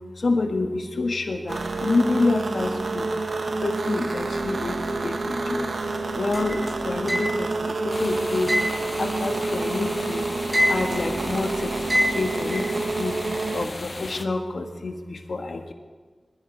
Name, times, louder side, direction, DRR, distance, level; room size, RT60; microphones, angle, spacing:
voice 1, 0.2-3.1 3.6-4.8 5.0-5.7 6.1-8.5 9.0-10.2 10.7-11.7 12.1-13.2 13.5-15.7, left 3 dB, 75° left, 4 dB, 1.6 m, -27 dB
sound 1, 1.5-13.7, right 3 dB, 75° right, 1.1 m, -28 dB
sound 2, 6.3-7.6 8.5-9.9 10.2-11.1 11.9-12.8, equal, 20° right, 3.8 m, -24 dB
sound 3, 7.9-14.2, left 2 dB, 45° left, 1.0 m, -36 dB
21.0 x 14.0 x 4.1 m, 1.4 s
wide cardioid pair, 65°, 0 cm